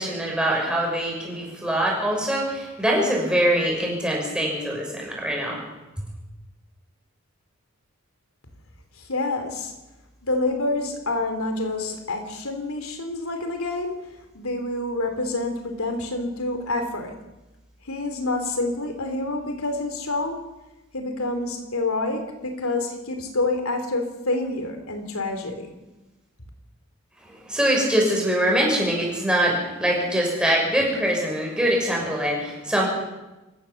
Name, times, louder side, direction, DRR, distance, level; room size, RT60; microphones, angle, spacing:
voice 1, 0.0-5.6 27.5-32.9, right 1 dB, 5° right, -2 dB, 6.1 m, -23 dB
voice 2, 9.1-9.7 10.2-14.0 14.3-17.2 17.8-20.4 20.9-25.8, left 2 dB, 85° left, 6 dB, 2.9 m, -27 dB
26.0 x 15.0 x 7.0 m, 1.1 s
head